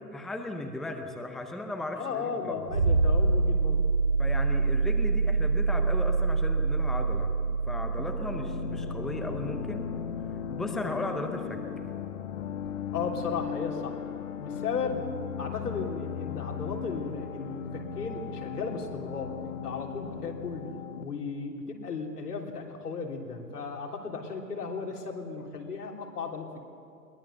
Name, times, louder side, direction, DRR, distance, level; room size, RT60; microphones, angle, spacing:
voice 1, 0.0-2.7 4.2-7.3 7.7-9.9 10.5-11.6, left 1 dB, ahead, 5 dB, 0.7 m, -36 dB
voice 2, 1.9-3.8 8.2-8.3 10.8-10.9 12.9-14.0 14.4-15.1 15.4-20.7 21.0-26.6, left 5 dB, 70° left, 1 dB, 3.4 m, -35 dB
sound 1, 2.7-11.1 12.7-12.8, right 3 dB, 70° right, 2.8 m, -26 dB
sound 2, 8.0-21.0, left 8 dB, 50° left, 1.3 m, -37 dB
22.0 x 20.0 x 6.8 m, 2.6 s
figure-of-eight pair, 125°, 48 cm